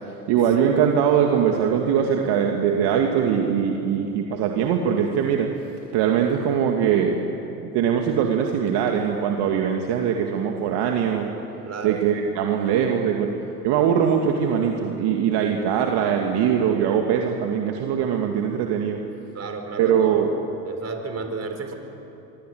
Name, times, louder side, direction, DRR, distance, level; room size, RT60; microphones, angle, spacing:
voice 1, 0.1-5.5 5.9-7.2 7.5-11.3 11.8-13.3 13.6-19.0 19.8-20.3, right 8 dB, 55° right, 2 dB, 2.3 m, -22 dB
voice 2, 11.6-12.0 19.3-20.2 20.6-21.7, right 4 dB, 30° right, 6 dB, 4.7 m, -32 dB
25.0 x 25.0 x 7.9 m, 3.0 s
hypercardioid pair, 75°, 47 cm